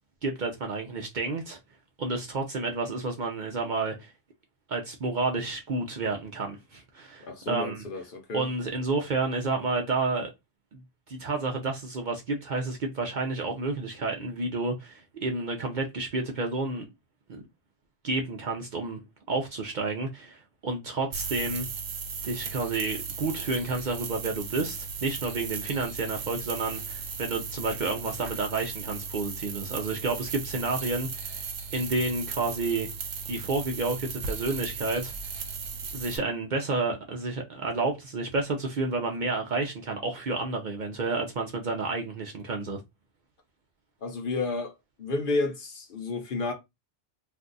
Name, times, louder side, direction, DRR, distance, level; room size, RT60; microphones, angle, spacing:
voice 1, 0.2-1.6 2.0-4.1 4.7-7.8 8.3-10.3 10.7-10.8 11.1-16.8 17.3-17.5 18.0-19.0 19.3-21.7 22.2-31.4 31.7-32.9 33.3-35.1 35.9-42.8, right 3 dB, 50° right, 0.6 m, -30 dB
voice 2, 7.2-8.4 44.0-44.7 45.0-46.5, left 3 dB, 55° left, 0.8 m, -31 dB
sound 1, 21.1-36.2, right 5 dB, 80° right, 1.0 m, -36 dB
2.6 x 2.3 x 3.8 m
omnidirectional pair, 1.2 m